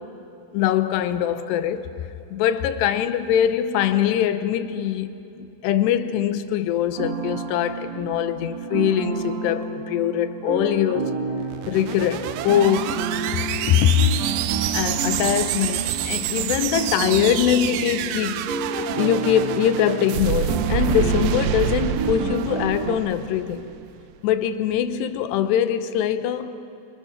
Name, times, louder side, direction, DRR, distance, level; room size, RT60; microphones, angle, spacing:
voice 1, 0.5-1.9 2.3-11.1 11.7-13.0 13.3-14.1 14.7-23.6 24.2-26.6, left 10 dB, 80° left, 2.8 m, -22 dB
sound 1, 7.0-23.0, right 4 dB, 60° right, 1.9 m, -30 dB
sound 2, 11.4-23.8, right 12 dB, 80° right, 2.2 m, -27 dB
27.5 x 25.0 x 5.9 m
omnidirectional pair, 5.1 m